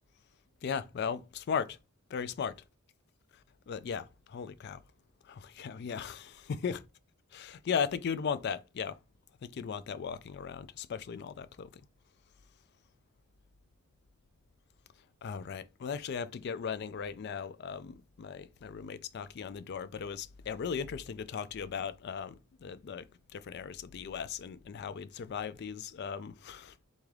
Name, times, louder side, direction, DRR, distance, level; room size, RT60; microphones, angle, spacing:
voice 1, 0.6-1.8 2.1-2.6 3.7-4.8 5.3-6.8 7.3-9.0 9.5-11.7 15.2-23.0 23.3-26.7, left 6 dB, 50° left, 0.3 m, -37 dB
3.9 x 3.2 x 3.5 m
head